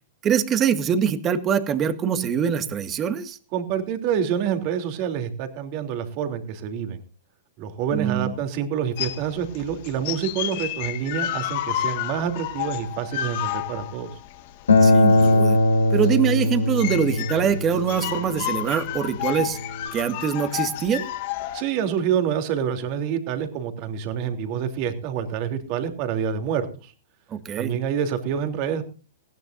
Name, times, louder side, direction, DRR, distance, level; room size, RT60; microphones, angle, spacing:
voice 1, 0.2-3.4 7.9-8.3 14.8-15.6 15.9-19.6 19.9-21.1 27.3-27.8, right 8 dB, 25° right, 10 dB, 1.9 m, -24 dB
voice 2, 3.5-7.0 7.6-14.1 21.5-26.9 27.6-28.8, right 8 dB, 45° right, 7 dB, 3.1 m, -27 dB
sound 1, 9.0-21.6, left 13 dB, 55° left, 1.8 m, -31 dB
Acoustic guitar, 14.7-19.9, left 2 dB, 80° left, 3.5 m, -21 dB
20.0 x 16.5 x 2.6 m, 0.34 s
hypercardioid pair, 115°, 0 cm